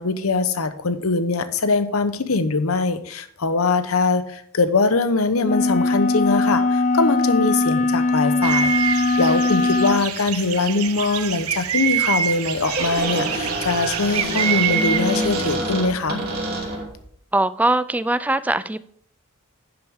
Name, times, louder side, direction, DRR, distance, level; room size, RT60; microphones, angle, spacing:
voice 1, 0.0-16.2, left 3 dB, 75° left, 0.9 m, -22 dB
sound 1, 5.4-10.1, left 3 dB, 35° left, 0.6 m, -20 dB
sound 2, 8.4-15.5, right 9 dB, 85° right, 0.8 m, -26 dB
Squeak, 12.4-17.0, right 1 dB, 45° right, 3.0 m, -26 dB
voice 2, 17.3-18.8, right 2 dB, 5° right, 0.3 m, -21 dB
10.5 x 7.6 x 3.6 m
head